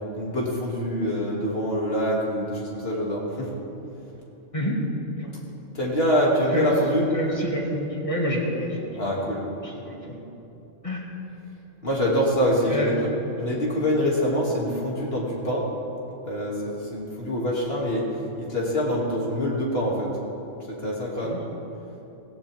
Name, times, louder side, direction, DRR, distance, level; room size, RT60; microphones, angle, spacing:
voice 1, 0.2-3.5 5.7-7.0 8.9-9.4 11.8-13.1 13.4-15.6 16.3-18.1 18.4-20.1 20.7-21.4, equal, 50° left, -4 dB, 2.9 m, -25 dB
voice 2, 7.1-9.2 9.6-10.3 10.8-11.0 12.6-12.9 21.2-21.4, equal, 25° left, -2 dB, 2.2 m, -29 dB
17.0 x 16.5 x 3.6 m, 2.9 s
omnidirectional pair, 1.3 m